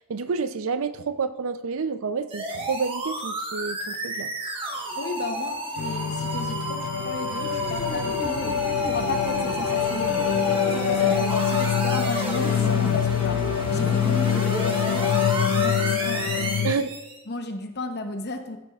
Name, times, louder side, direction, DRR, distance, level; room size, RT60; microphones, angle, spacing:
voice 1, 0.1-4.3 16.6-16.9, right 5 dB, 65° right, 12 dB, 0.5 m, -29 dB
sound 1, 2.3-17.2, right 1 dB, 25° right, 1.3 m, -31 dB
voice 2, 4.9-16.7 17.3-18.6, left 2 dB, 50° left, 6 dB, 0.9 m, -34 dB
sound 2, 5.8-16.7, left 9 dB, 85° left, 0.4 m, -25 dB
14.0 x 7.4 x 2.4 m, 1.0 s
head